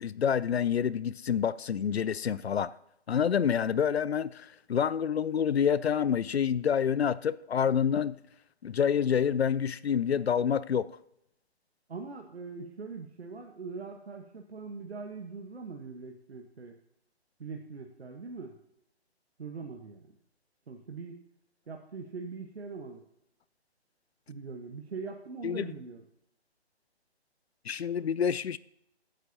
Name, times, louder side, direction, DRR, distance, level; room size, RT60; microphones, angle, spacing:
voice 1, 0.0-2.7 3.1-8.2 8.6-10.9 25.4-25.7 27.7-28.6, left 8 dB, 70° left, 0.5 m, -27 dB
voice 2, 11.9-16.8 17.4-18.6 19.4-20.2 20.7-21.2 21.7-23.0 24.3-26.1, right 4 dB, 70° right, 1.2 m, -42 dB
15.5 x 9.2 x 2.8 m
figure-of-eight pair, 145°, 33 cm